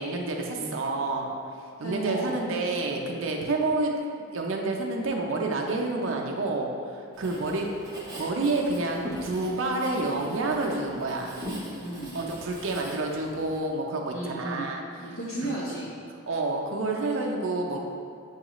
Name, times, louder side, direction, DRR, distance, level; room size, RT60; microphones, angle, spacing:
voice 1, 0.0-1.3 1.8-3.9 4.3-7.7 8.2-11.3 12.1-14.8 16.3-17.8, right 2 dB, 60° right, 1 dB, 0.5 m, -29 dB
voice 2, 1.8-2.4 11.8-12.2 14.1-14.7 15.0-15.9, right 2 dB, 70° left, -11 dB, 0.8 m, -34 dB
Writing, 7.1-13.6, equal, 15° right, 0.6 m, -41 dB
6.9 x 2.4 x 2.9 m, 2.4 s
head